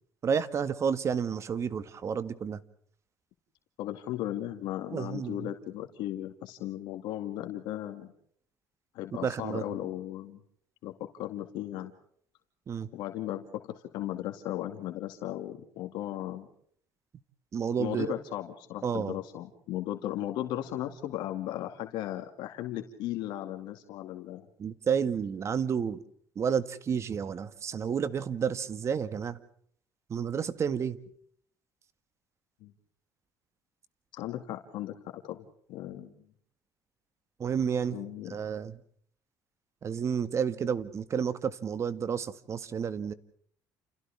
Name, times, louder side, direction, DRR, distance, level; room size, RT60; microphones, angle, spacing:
voice 1, 0.2-2.6 4.9-5.5 9.2-9.6 12.7-12.9 17.5-18.1 18.8-19.2 24.6-26.0 26.4-29.4 30.1-31.0 37.4-38.0 38.3-38.8 39.8-43.1, right 7 dB, 40° right, 13 dB, 1.8 m, -30 dB
voice 2, 3.8-8.1 8.9-10.4 10.8-11.9 12.9-16.5 17.8-24.5 32.6-32.7 34.1-36.1 37.9-38.4, left 13 dB, 80° left, 6 dB, 2.4 m, -36 dB
30.0 x 29.5 x 3.6 m, 0.63 s
cardioid pair, 120°, 7 cm